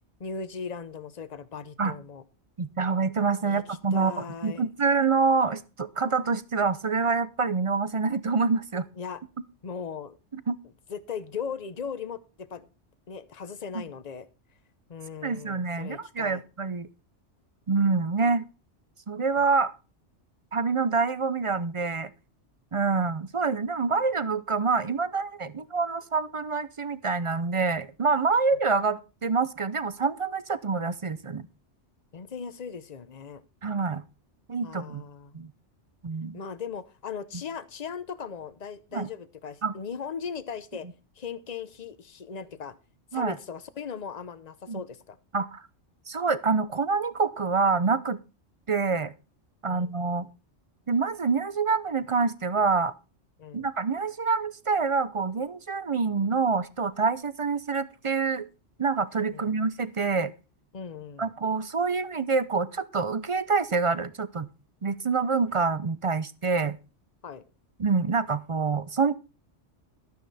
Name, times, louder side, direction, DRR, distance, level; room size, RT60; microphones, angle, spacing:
voice 1, 0.2-2.2 3.4-4.7 9.0-9.2 9.6-10.2 10.9-12.7 13.1-14.3 14.9-16.4 22.9-23.1 32.1-33.4 34.6-35.4 36.3-40.9 41.2-42.7 43.1-45.2 49.7-50.2 53.4-53.7 59.3-59.5 60.7-61.3 67.2-67.4, left 6 dB, 40° left, 0.9 m, -38 dB
voice 2, 2.6-8.9 10.3-10.6 13.7-13.8 15.2-16.9 17.7-18.5 19.1-19.7 20.5-22.1 22.7-31.5 33.6-34.0 34.5-35.0 35.3-35.5 36.0-36.4 38.9-39.1 39.6-39.7 43.1-43.4 44.7-44.8 45.3-45.6 46.1-48.2 48.7-49.1 49.6-50.3 50.9-52.9 53.5-58.5 58.8-60.3 61.2-64.5 64.8-66.8 67.8-69.1, right 4 dB, 35° right, 0.5 m, -26 dB
12.5 x 9.4 x 4.1 m
omnidirectional pair, 1.2 m